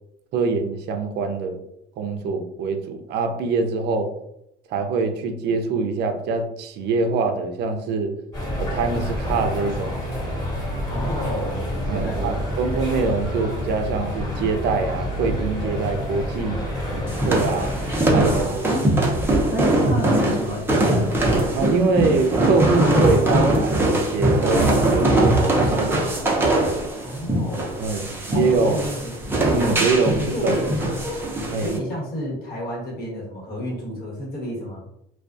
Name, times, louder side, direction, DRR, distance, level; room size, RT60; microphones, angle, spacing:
voice 1, 0.3-1.6 2.0-4.1 4.7-8.1 8.6-10.0 11.0-11.2 11.9-16.6 16.9-17.7 18.1-18.7 21.5-26.0 27.8-28.9 29.5-30.6 31.5-31.7, right 4 dB, 60° right, 6 dB, 0.5 m, -24 dB
sound 1, 8.3-18.4, equal, 20° left, 1.3 m, -28 dB
voice 2, 10.9-12.3 18.1-18.3 18.7-18.9 19.5-21.1 27.0-27.7 28.3-29.2 30.1-31.1 31.6-34.8, equal, 55° left, -3 dB, 1.2 m, -30 dB
sound 2, 17.1-31.8, right 1 dB, 10° right, 0.6 m, -21 dB
2.3 x 2.3 x 2.4 m, 0.79 s
supercardioid pair, 100°, 19 cm